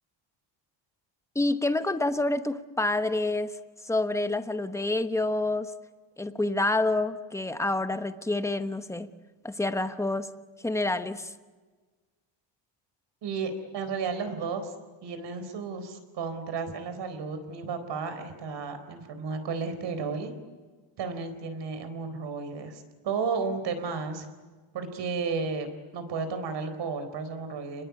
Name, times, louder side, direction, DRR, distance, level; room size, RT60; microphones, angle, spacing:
voice 1, 1.3-3.5 3.8-5.7 6.2-9.1 9.4-10.3 10.6-11.3, left 2 dB, 5° left, 9 dB, 1.0 m, -28 dB
voice 2, 13.2-14.7 15.0-20.3 21.0-24.3 24.7-25.7 25.9-27.8, right 5 dB, 60° right, 9 dB, 4.2 m, -33 dB
30.0 x 21.0 x 8.3 m, 1.4 s
cardioid pair, 150°, 48 cm